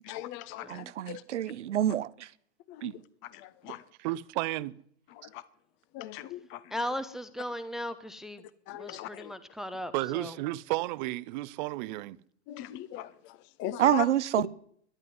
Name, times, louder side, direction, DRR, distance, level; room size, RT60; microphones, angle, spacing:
voice 1, 0.0-1.2 2.7-3.9 5.1-5.4 5.9-6.8 8.7-9.3 12.5-14.1, left 13 dB, 35° left, 0.9 m, -40 dB
voice 2, 0.7-2.3 2.8-2.9 13.8-14.5, right 11 dB, 80° right, 0.7 m, -27 dB
voice 3, 4.0-4.8 9.9-12.2, right 18 dB, 40° right, 0.6 m, -32 dB
voice 4, 6.7-8.4 8.7-10.4, equal, ahead, 0.7 m, -37 dB
12.5 x 10.5 x 9.5 m
hypercardioid pair, 120°, 35 cm